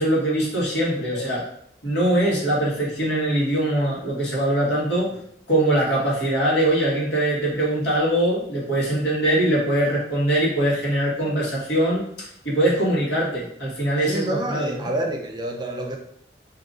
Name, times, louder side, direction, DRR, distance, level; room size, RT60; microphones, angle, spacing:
voice 1, 0.0-1.4 1.8-5.1 5.5-14.9, right 1 dB, 85° left, -7 dB, 1.4 m, -22 dB
voice 2, 14.1-16.0, right 1 dB, 25° right, 2 dB, 0.3 m, -28 dB
2.7 x 2.5 x 3.7 m, 0.69 s
head